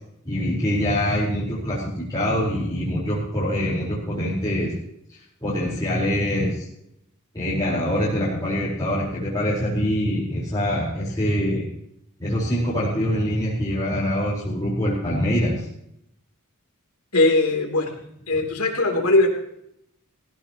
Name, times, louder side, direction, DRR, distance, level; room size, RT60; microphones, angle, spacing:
voice 1, 0.2-4.8 5.4-6.7 7.3-11.7 12.2-15.6 18.3-18.4, equal, 15° left, -9 dB, 4.4 m, -24 dB
voice 2, 17.1-17.9 18.3-19.3, left 2 dB, 85° left, 2 dB, 3.2 m, -19 dB
19.5 x 16.0 x 3.0 m, 0.75 s
head